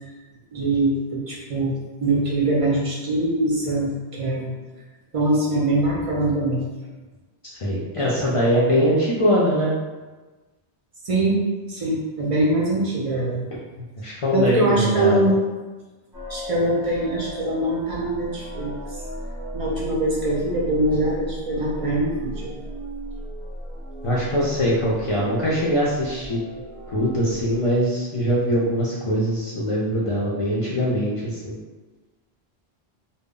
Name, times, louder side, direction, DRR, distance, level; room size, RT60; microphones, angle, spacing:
voice 1, 0.5-1.7 2.0-4.5 5.1-6.7 11.0-11.4 11.7-13.5 14.3-15.4 16.3-18.8 19.5-22.5, right 2 dB, 50° right, -4 dB, 0.4 m, -23 dB
voice 2, 7.4-9.7 14.0-15.3 24.0-26.4 26.9-31.6, equal, 60° left, -6 dB, 0.3 m, -22 dB
sound 1, 16.1-27.7, equal, ahead, 0.7 m, -35 dB
2.0 x 2.0 x 3.6 m, 1.2 s
omnidirectional pair, 1.1 m